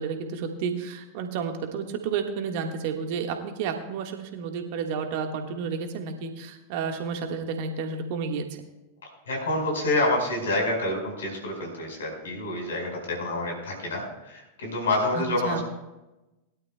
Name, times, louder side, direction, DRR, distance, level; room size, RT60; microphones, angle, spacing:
voice 1, 0.0-8.4 15.1-15.6, right 6 dB, 50° right, 5 dB, 1.5 m, -31 dB
voice 2, 9.3-15.6, left 2 dB, 65° left, 0 dB, 4.8 m, -27 dB
20.5 x 12.0 x 2.2 m, 1.0 s
figure-of-eight pair, 90°, 0 cm